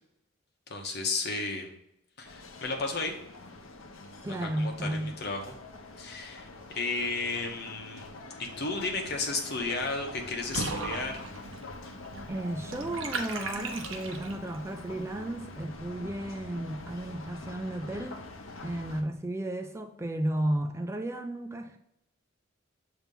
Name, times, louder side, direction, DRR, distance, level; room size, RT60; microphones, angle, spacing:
voice 1, 0.7-1.7 2.2-3.1 4.4-5.5 6.0-6.5 6.7-8.1 8.4-11.3, left 3 dB, 55° left, 1.1 m, -33 dB
sound 1, 2.2-19.0, left 2 dB, 80° left, 0.8 m, -45 dB
voice 2, 4.2-5.1 12.3-18.2 18.6-21.8, right 1 dB, 15° right, 0.3 m, -33 dB
Water / Bathtub (filling or washing), 10.5-14.6, right 3 dB, 80° right, 0.8 m, -37 dB
6.9 x 2.9 x 5.3 m
head